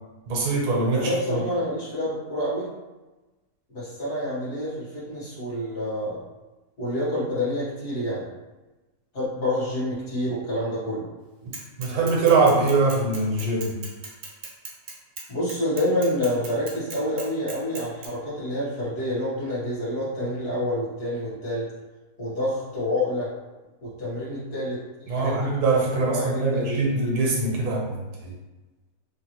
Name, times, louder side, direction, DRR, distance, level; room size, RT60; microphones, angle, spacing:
voice 1, 0.3-1.4 11.8-13.8 25.1-28.3, right 3 dB, 80° right, -2 dB, 1.3 m, -23 dB
voice 2, 0.9-2.7 3.7-6.2 6.8-8.3 9.1-11.1 15.3-21.7 22.2-23.3 23.8-25.6 25.9-26.8, left 1 dB, 50° left, -10 dB, 1.5 m, -28 dB
Bicycle / Mechanisms, 11.5-18.1, right 4 dB, 55° right, 0.8 m, -38 dB
3.4 x 2.4 x 2.9 m, 1.1 s
omnidirectional pair, 1.6 m